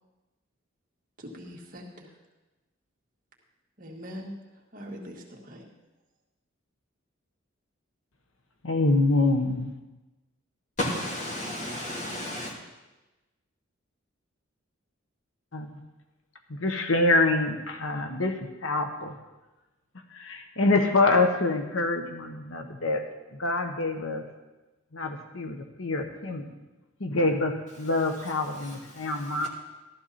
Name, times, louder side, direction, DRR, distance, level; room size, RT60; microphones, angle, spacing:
voice 1, 1.2-2.2 3.8-5.7, equal, 40° right, 1.9 m, -42 dB
voice 2, 8.6-9.7 15.5-15.8 16.5-19.2 20.1-23.0 23.3-24.2 24.9-26.4 27.0-29.5, left 2 dB, 75° left, 1.2 m, -26 dB
voice 3, 10.8-12.5 28.2-29.5, left 1 dB, 35° left, 3.1 m, -34 dB
14.5 x 12.5 x 4.3 m
head